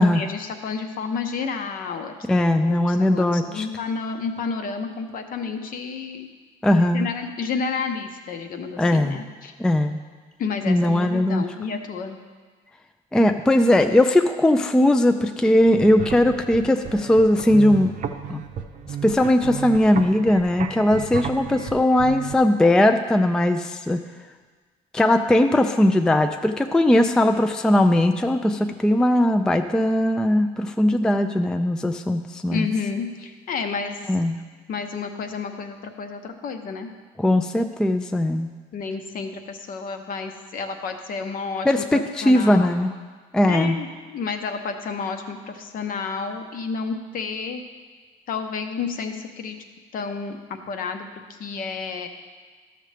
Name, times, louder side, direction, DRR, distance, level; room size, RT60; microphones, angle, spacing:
voice 1, 0.0-6.3 6.9-9.5 10.4-12.2 32.5-34.0 34.7-36.9 38.7-42.7 43.5-47.6 48.3-49.6 49.9-50.4 50.7-51.1 51.4-52.1, left 5 dB, 55° left, 6 dB, 0.8 m, -30 dB
voice 2, 2.3-3.7 6.6-7.1 8.8-9.2 9.6-10.0 10.7-11.5 13.1-17.9 18.3-18.4 19.0-24.0 24.9-32.7 34.1-34.4 37.2-38.5 41.7-42.9 43.3-43.8, left 1 dB, 5° left, 7 dB, 0.3 m, -19 dB
sound 1, 15.7-22.3, right 7 dB, 50° right, 0.6 m, -34 dB
12.0 x 6.7 x 3.3 m, 1.5 s
cardioid pair, 110°, 17 cm